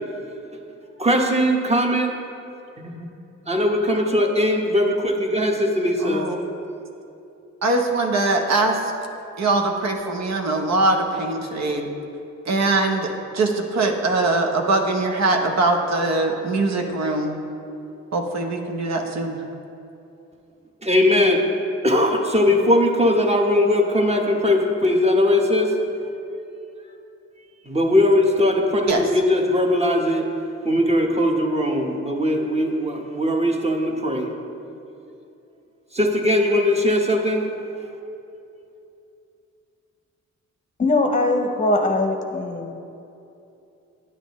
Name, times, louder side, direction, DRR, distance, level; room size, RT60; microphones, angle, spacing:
voice 1, 1.0-2.2 2.8-3.1 3.5-6.3 20.8-21.4 21.8-25.7 27.7-30.2 30.6-34.3 35.9-37.5, left 1 dB, 20° right, 1 dB, 1.0 m, -20 dB
voice 2, 6.0-6.4 7.6-8.9 9.4-11.9 12.4-17.3 18.1-19.4 28.9-29.0, right 2 dB, 65° right, 2 dB, 0.8 m, -22 dB
voice 3, 40.8-42.7, left 2 dB, 25° left, 3 dB, 0.7 m, -21 dB
9.5 x 7.5 x 3.1 m, 2.7 s
cardioid pair, 70°, 29 cm